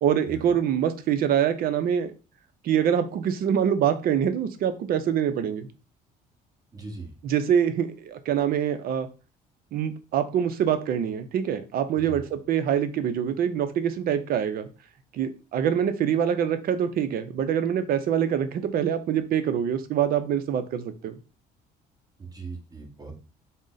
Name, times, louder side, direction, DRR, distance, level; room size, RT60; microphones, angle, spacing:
voice 1, 0.0-2.1 2.6-5.7 7.2-9.1 9.7-14.7 15.1-21.1, right 9 dB, 60° right, 10 dB, 0.6 m, -25 dB
voice 2, 6.7-7.1 12.0-12.2 22.2-23.2, right 4 dB, 20° right, 1 dB, 1.2 m, -39 dB
3.8 x 2.1 x 3.8 m, 0.32 s
cardioid pair, 110°, 17 cm